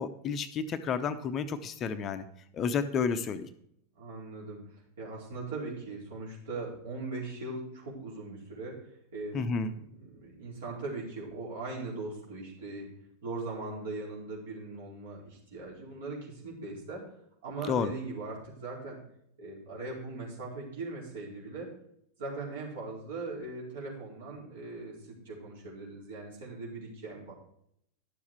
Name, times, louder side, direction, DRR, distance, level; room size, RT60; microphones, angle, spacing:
voice 1, 0.0-2.2 2.5-3.5 9.3-9.7 17.7-17.9, left 5 dB, 30° left, 10 dB, 0.8 m, -31 dB
voice 2, 3.9-12.9 13.2-17.2 17.4-19.0 19.4-21.7 22.2-27.3, right 3 dB, 60° right, -3 dB, 4.5 m, -40 dB
11.5 x 7.2 x 4.6 m, 0.72 s
figure-of-eight pair, 90°, 0 cm